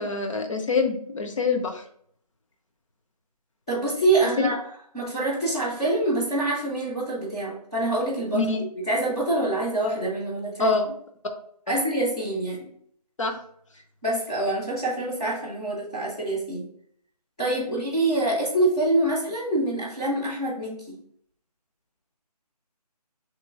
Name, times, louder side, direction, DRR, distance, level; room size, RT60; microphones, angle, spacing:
voice 1, 0.0-1.8 4.4-4.5 8.3-8.6 10.6-10.9 11.7-11.8 13.2-13.3 17.5-17.8, left 4 dB, 50° left, 4 dB, 0.7 m, -25 dB
voice 2, 3.7-4.6 4.9-8.5 8.7-10.7 11.7-12.7 14.0-16.7 17.4-21.0, right 2 dB, 10° left, -10 dB, 0.5 m, -25 dB
3.1 x 2.9 x 4.6 m, 0.65 s
figure-of-eight pair, 155°, 21 cm